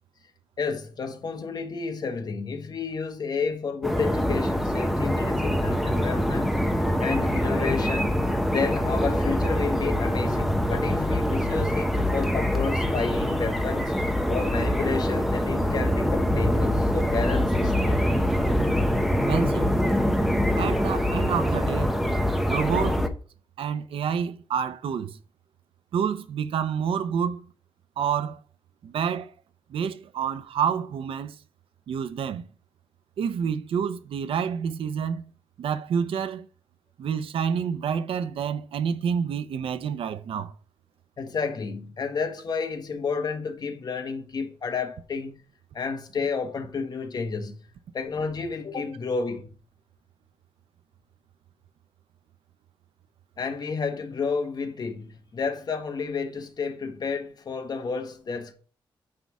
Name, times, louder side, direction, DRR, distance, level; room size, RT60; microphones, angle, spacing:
voice 1, 0.6-8.1 8.5-13.9 14.3-18.2 41.2-45.3 45.7-47.6 47.9-49.5 53.4-58.5, left 5 dB, 50° left, 1.5 m, -31 dB
sound 1, 3.8-23.1, equal, ahead, 1.0 m, -24 dB
voice 2, 19.2-19.8 20.6-21.9 22.4-23.0 23.6-25.2 25.9-27.5 28.0-28.4 28.8-29.3 29.7-31.4 31.9-32.5 33.2-35.2 35.6-36.5 37.0-40.5, right 7 dB, 90° right, 0.7 m, -28 dB
9.5 x 3.6 x 6.2 m
wide cardioid pair, 140°, 9 cm